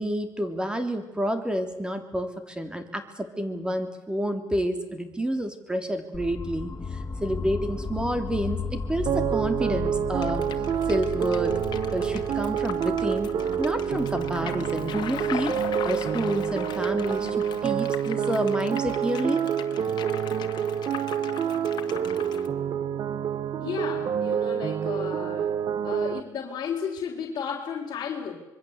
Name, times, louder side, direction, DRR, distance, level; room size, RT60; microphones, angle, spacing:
voice 1, 0.0-11.5 11.9-13.3 13.6-15.6 15.8-19.4, right 1 dB, 10° right, 8 dB, 3.2 m, -29 dB
sound 1, 6.1-18.1, left 4 dB, 30° left, 1.9 m, -36 dB
sound 2, 9.1-26.2, right 8 dB, 60° right, 1.0 m, -28 dB
sound 3, 10.2-22.5, left 10 dB, 70° left, 2.0 m, -40 dB
voice 2, 23.6-25.5 25.8-28.4, left 7 dB, 55° left, -3 dB, 3.7 m, -33 dB
26.0 x 22.0 x 8.1 m, 0.97 s
cardioid pair, 110°, 8 cm